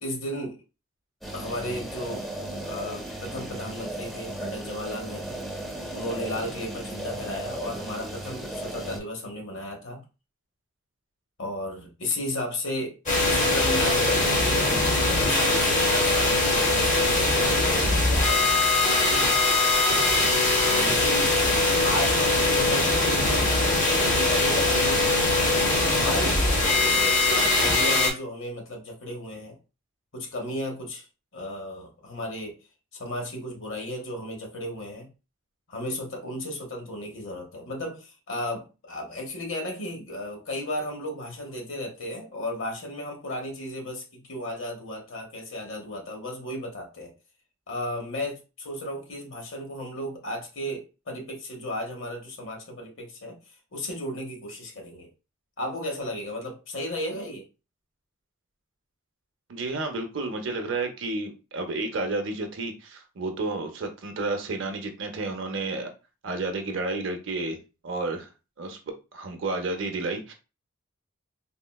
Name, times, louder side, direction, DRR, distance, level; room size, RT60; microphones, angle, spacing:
voice 1, 0.0-0.6 1.3-2.3 2.6-5.4 5.9-10.0 11.4-13.0 13.3-18.6 20.6-21.3 21.8-23.5 24.0-25.1 25.8-27.2 27.5-29.6 30.1-31.1 31.3-32.6 32.9-35.1 35.7-47.1 47.7-53.4 53.7-55.1 55.6-57.4, left 1 dB, 70° left, 1.0 m, -34 dB
sound 1, 1.2-9.0, right 1 dB, ahead, 0.5 m, -36 dB
sound 2, 13.1-28.1, left 2 dB, 35° left, 0.8 m, -22 dB
voice 2, 59.5-65.9 66.2-68.3 68.6-70.3, right 3 dB, 60° right, 0.6 m, -31 dB
3.6 x 2.1 x 2.3 m
head